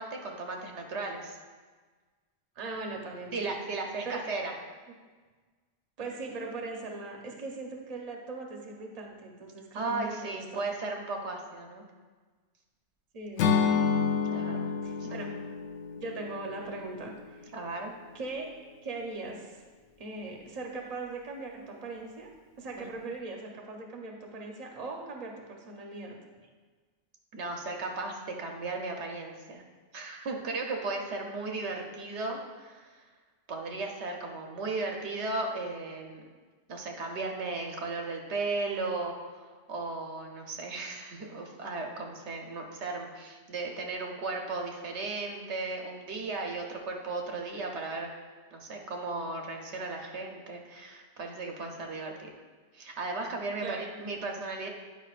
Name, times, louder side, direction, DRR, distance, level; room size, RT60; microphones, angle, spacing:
voice 1, 0.0-1.4 3.3-4.6 9.7-11.8 14.3-14.7 15.1-15.2 17.5-17.9 22.8-22.9 27.3-29.6 29.9-33.0 33.5-36.2 36.7-48.1 48.5-52.3 52.7-54.7, right 3 dB, 70° right, 2 dB, 1.0 m, -36 dB
voice 2, 2.5-3.6 4.0-4.2 6.0-10.6 13.1-13.9 14.8-15.3 15.9-17.5 18.1-18.5 18.8-19.6 20.0-22.3 22.6-26.2 53.6-54.0, right 3 dB, 35° right, 1 dB, 0.8 m, -40 dB
Acoustic guitar / Strum, 13.4-17.5, left 6 dB, 75° left, 0.8 m, -29 dB
9.5 x 5.1 x 2.4 m, 1.4 s
omnidirectional pair, 1.2 m